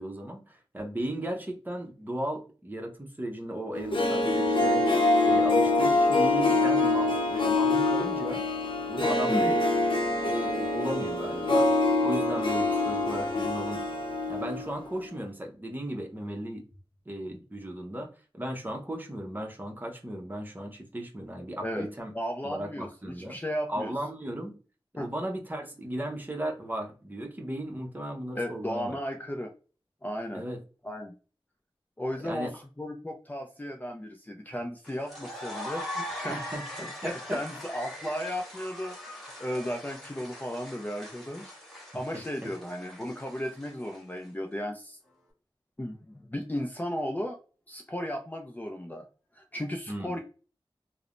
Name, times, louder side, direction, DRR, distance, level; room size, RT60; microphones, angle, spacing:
voice 1, 0.0-8.4 8.9-9.6 10.3-11.7 12.0-13.8 14.3-16.7 17.1-22.1 22.4-23.4 23.7-24.6 24.9-29.0 30.3-30.6 32.2-32.5 36.3-37.4 49.9-50.2, right 1 dB, 20° right, 0.7 m, -36 dB
Harp, 3.7-14.8 15.0-15.1, left 2 dB, 65° left, 0.7 m, -25 dB
voice 2, 22.1-23.9 25.0-25.1 28.3-29.5 30.0-30.4 30.8-31.1 32.0-32.5 32.8-36.4 36.8-41.5 41.9-45.0 45.8-47.4 47.7-49.0 49.4-50.2, equal, 20° left, 0.4 m, -35 dB
sound 1, 34.8-44.2, left 1 dB, ahead, 1.3 m, -41 dB
3.1 x 2.0 x 2.5 m
wide cardioid pair, 75°, 9 cm